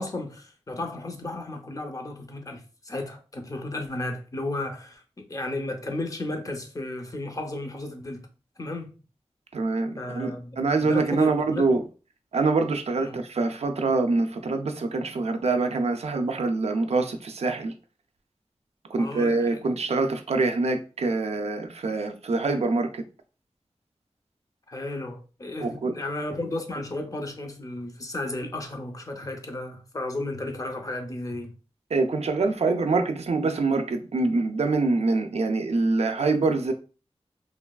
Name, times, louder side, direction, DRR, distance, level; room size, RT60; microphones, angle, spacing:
voice 1, 0.0-8.3 8.6-8.9 9.9-11.7 13.0-13.2 18.9-19.6 24.7-31.5, left 2 dB, 30° left, 0.5 m, -34 dB
voice 2, 9.5-11.8 12.3-17.7 18.9-23.0 25.6-25.9 31.9-36.7, right 3 dB, 70° right, 0.4 m, -25 dB
3.1 x 2.2 x 2.3 m
wide cardioid pair, 85°, 11 cm